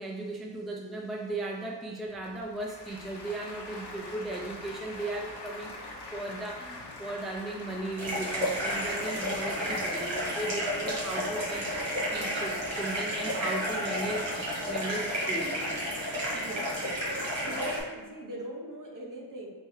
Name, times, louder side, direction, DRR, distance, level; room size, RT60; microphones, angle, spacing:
voice 1, 0.0-15.6, right 2 dB, ahead, -1 dB, 0.4 m, -37 dB
Applause, 2.1-12.7, left 2 dB, 65° left, 0.8 m, -45 dB
sound 1, 8.0-17.8, equal, 90° right, 1.3 m, -31 dB
voice 2, 16.3-17.1 17.4-19.5, right 1 dB, 45° right, -1 dB, 0.9 m, -41 dB
4.2 x 3.6 x 3.1 m, 1.4 s
wide cardioid pair, 90°, 44 cm